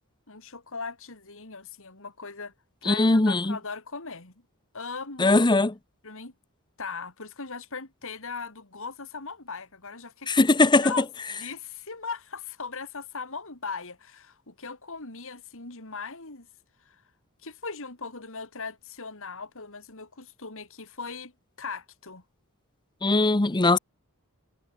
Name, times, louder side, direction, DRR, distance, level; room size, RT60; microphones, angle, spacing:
voice 1, 0.3-2.5 2.8-4.3 4.7-5.5 6.0-6.3 6.8-10.3 10.8-16.5 16.8-17.0 17.4-21.3 21.6-22.2, left 4 dB, 65° left, 3.7 m, -39 dB
voice 2, 2.9-3.6 5.2-5.7 10.3-10.9 23.0-23.8, left 2 dB, 20° left, 0.8 m, -20 dB
head